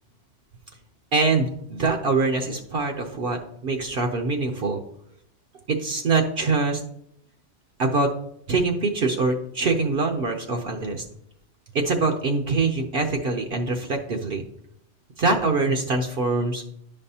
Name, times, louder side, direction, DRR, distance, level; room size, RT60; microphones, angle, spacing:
voice 1, 1.1-4.8 5.7-6.8 7.8-8.1 8.5-11.0 11.7-14.4 15.2-16.6, right 3 dB, 60° right, 3 dB, 0.9 m, -24 dB
10.5 x 5.3 x 2.8 m, 0.73 s
omnidirectional pair, 1.1 m